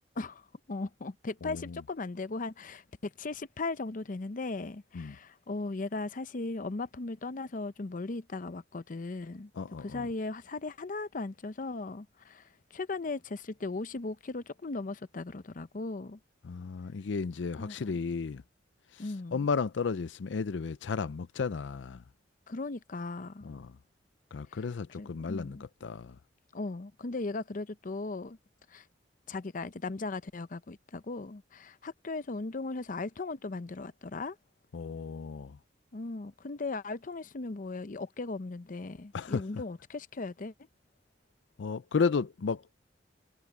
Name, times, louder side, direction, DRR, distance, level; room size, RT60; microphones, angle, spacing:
voice 1, 0.2-9.5 9.8-16.2 17.6-18.0 19.0-19.4 22.5-23.5 24.5-24.6 25.0-25.7 26.5-28.4 28.7-28.9 29.3-34.4 35.9-40.5, left 3 dB, 45° left, 0.7 m, -37 dB
voice 2, 1.4-1.8 4.9-5.2 9.6-10.1 16.4-18.4 18.9-22.0 23.4-23.8 24.3-26.2 34.7-35.6 39.1-39.4 41.6-42.9, left 5 dB, 90° left, 0.5 m, -33 dB
head